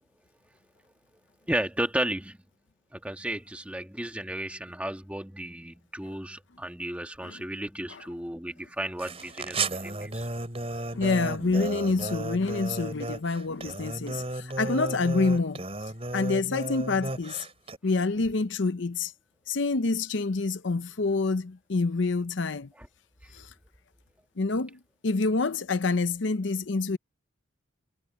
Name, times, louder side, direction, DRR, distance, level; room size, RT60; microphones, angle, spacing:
voice 1, 1.5-2.4 2.9-10.3 22.8-22.9, right 1 dB, 5° right, 1.6 m, -33 dB
sound 1, 9.0-17.8, right 2 dB, 30° right, 4.2 m, -34 dB
voice 2, 10.9-15.6 16.1-17.5 17.8-19.1 19.5-22.7 23.3-23.5 24.4-27.0, left 3 dB, 65° left, 0.7 m, -27 dB
head